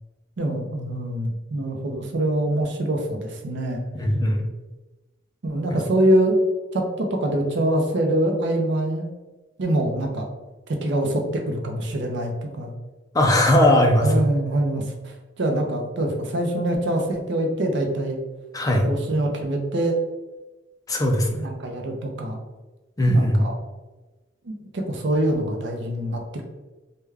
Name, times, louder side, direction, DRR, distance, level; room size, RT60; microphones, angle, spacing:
voice 1, 0.4-3.8 5.4-6.4 6.7-9.1 9.6-10.3 10.7-12.7 14.0-18.2 18.8-20.0 21.4-22.4 23.1-23.5 24.4-26.2, right 1 dB, 65° right, 2 dB, 0.6 m, -24 dB
voice 2, 3.9-4.4 13.1-14.1 18.5-18.9 20.9-21.4 23.0-23.5, left 1 dB, 20° left, 2 dB, 0.4 m, -19 dB
3.2 x 2.2 x 3.4 m, 1.1 s
head